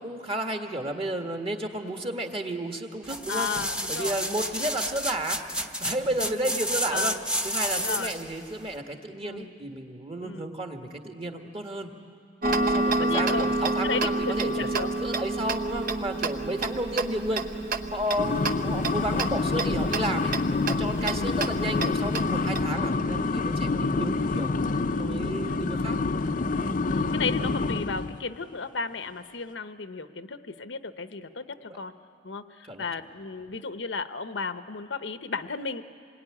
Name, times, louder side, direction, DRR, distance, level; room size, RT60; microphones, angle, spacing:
voice 1, 0.0-3.5 3.9-5.4 5.8-7.1 7.4-11.9 12.6-17.4 17.9-20.3 20.7-24.6 25.0-26.0 32.7-32.9, right 1 dB, 30° right, 4 dB, 1.8 m, -32 dB
sound 1, 3.0-8.3 8.8-8.9, equal, 5° right, 1.0 m, -30 dB
voice 2, 3.3-4.2 6.2-6.5 6.9-7.2 7.7-8.1 9.2-9.5 10.2-10.5 12.5-13.5 13.8-14.9 20.9-21.5 24.9-25.3 26.5-31.9 32.2-35.8, left 4 dB, 75° left, 10 dB, 0.9 m, -34 dB
Tick-tock, 12.4-22.6, right 2 dB, 50° right, 1.0 m, -29 dB
sound 2, 18.2-28.2, left 3 dB, 45° left, 0.6 m, -27 dB
27.0 x 22.0 x 9.9 m, 2.4 s
head